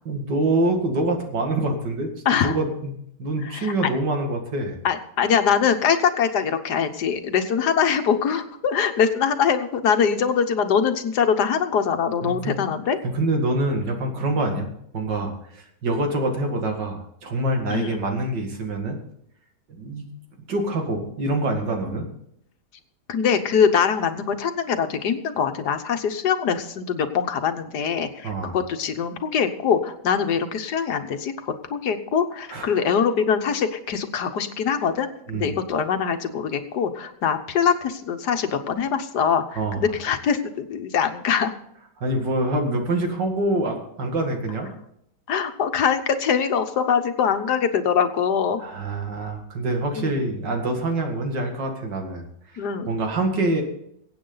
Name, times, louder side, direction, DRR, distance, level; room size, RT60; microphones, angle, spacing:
voice 1, 0.1-2.1 2.4-2.9 3.2-4.8 12.2-12.6 13.1-19.0 19.7-20.1 20.5-22.1 28.2-28.6 32.5-32.8 35.3-35.5 39.5-39.8 42.0-44.7 48.6-52.2 52.9-53.6, right 2 dB, 85° right, 3 dB, 2.7 m, -25 dB
voice 2, 2.2-2.6 3.4-3.7 4.8-13.0 17.7-18.0 23.1-35.1 35.3-41.5 45.3-48.6 49.9-50.1 52.6-52.9, left 7 dB, 70° left, 8 dB, 1.6 m, -23 dB
23.0 x 8.7 x 4.0 m, 0.73 s
omnidirectional pair, 1.8 m